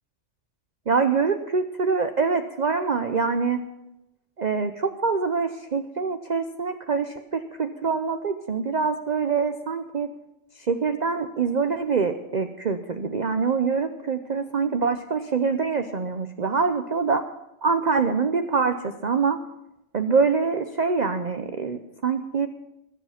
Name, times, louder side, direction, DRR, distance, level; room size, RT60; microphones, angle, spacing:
voice 1, 0.9-3.6 4.4-10.1 10.6-17.2 17.6-19.4 19.9-22.5, right 5 dB, 45° right, 8 dB, 0.6 m, -25 dB
21.0 x 7.3 x 5.7 m, 0.88 s
omnidirectional pair, 1.5 m